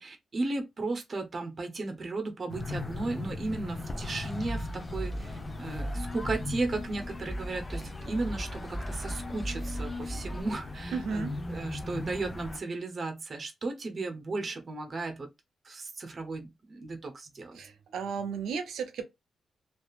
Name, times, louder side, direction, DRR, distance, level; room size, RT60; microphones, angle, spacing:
voice 1, 0.0-15.3 15.6-17.6, right 3 dB, 45° right, 0.8 m, -35 dB
sound 1, 2.5-12.6, left 2 dB, 30° left, 0.6 m, -39 dB
sound 2, 4.0-10.4, right 1 dB, 10° left, 1.0 m, -39 dB
sound 3, 5.1-11.9, left 4 dB, 45° left, 1.2 m, -46 dB
voice 2, 10.9-11.4 17.5-19.0, right 5 dB, 90° right, 0.6 m, -34 dB
2.8 x 2.4 x 2.3 m
cardioid pair, 85°, 0 cm